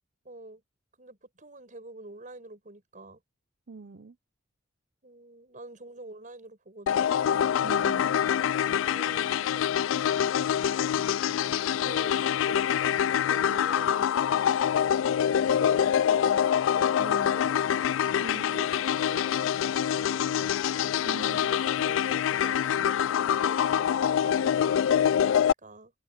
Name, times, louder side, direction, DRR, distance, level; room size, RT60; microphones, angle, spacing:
voice 1, 0.2-0.6 1.0-3.2 5.0-7.1 8.8-10.0 11.7-12.7 13.2-14.1 14.7-17.7 18.5-20.6 21.4-25.9, right 2 dB, 40° right, 6.6 m, -46 dB
voice 2, 3.7-4.2 7.6-8.2 17.0-17.5 18.2-18.6 21.0-21.5, right 4 dB, 60° right, 0.7 m, -42 dB
sound 1, 6.9-25.5, left 9 dB, 80° left, 0.3 m, -25 dB
head